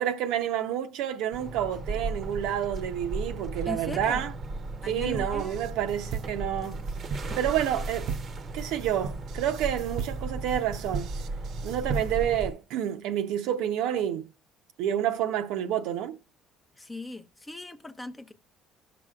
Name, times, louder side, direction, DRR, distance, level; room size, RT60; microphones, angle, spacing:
voice 1, 0.0-4.3 4.9-6.8 7.4-8.1 8.5-11.1 11.6-14.3 14.8-16.2, right 10 dB, 80° right, 0.8 m, -29 dB
sound 1, 1.3-12.5, right 2 dB, 35° right, 0.8 m, -35 dB
voice 2, 3.7-4.3 4.8-5.7 16.8-18.3, left 2 dB, 10° left, 0.6 m, -39 dB
sound 2, 5.1-12.4, right 7 dB, 55° right, 0.4 m, -38 dB
17.0 x 6.0 x 2.4 m
cardioid pair, 145°, 0 cm